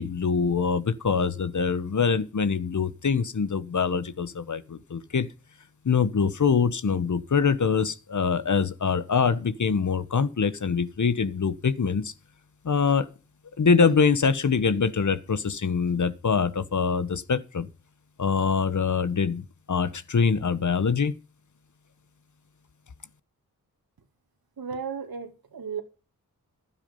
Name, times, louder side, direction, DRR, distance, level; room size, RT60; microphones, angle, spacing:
voice 1, 0.0-5.3 5.8-12.1 12.6-13.1 13.6-17.7 18.2-21.1, left 5 dB, 55° left, 1.3 m, -24 dB
voice 2, 24.6-25.8, right 6 dB, 80° right, 2.7 m, -34 dB
12.0 x 9.7 x 5.5 m
cardioid pair, 65°, 35 cm